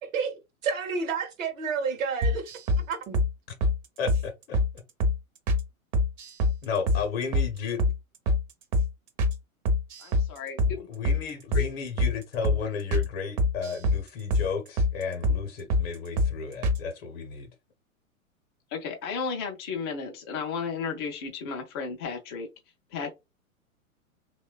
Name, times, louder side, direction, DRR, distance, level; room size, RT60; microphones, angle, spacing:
voice 1, 0.0-2.5 2.9-3.2, right 5 dB, 65° right, 0.8 m, -30 dB
sound 1, 2.2-2.8 3.1-3.3 3.6-3.8 4.1-4.2 4.5-4.7 5.0-5.2 5.5-5.6 5.9-6.6 6.9-7.0 7.3-7.5 7.8-8.0 8.3-8.4 8.7-8.9 9.2-9.4 9.7-10.3 10.6-10.7 11.0-11.2 11.5-11.7 12.0-12.1 12.4-12.6 12.9-13.1 13.4-14.0 14.3-14.5 14.8-14.9 15.2-15.4 15.7-15.9 16.2-16.3 16.6-16.8, left 1 dB, 35° right, 0.6 m, -24 dB
voice 2, 4.0-4.6 6.6-7.8 10.7-17.5, left 5 dB, 45° left, 0.7 m, -33 dB
voice 3, 10.0-10.9 11.5-11.7 18.7-22.5 22.9-23.1, left 5 dB, 20° left, 0.3 m, -33 dB
3.0 x 2.2 x 2.2 m
figure-of-eight pair, 105°, 43 cm